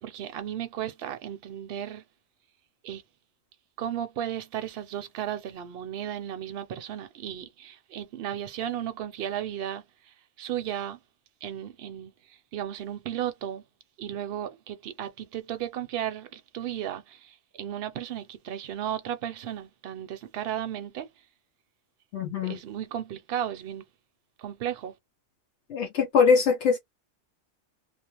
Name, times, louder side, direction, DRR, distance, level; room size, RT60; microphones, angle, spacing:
voice 1, 0.0-2.0 2.8-3.0 3.8-11.0 11.4-13.6 14.0-21.1 22.4-23.8 24.4-24.9, right 10 dB, 60° right, 0.7 m, -35 dB
voice 2, 22.1-22.6 25.7-26.8, left 5 dB, 70° left, 0.9 m, -22 dB
2.4 x 2.1 x 2.9 m
omnidirectional pair, 1.2 m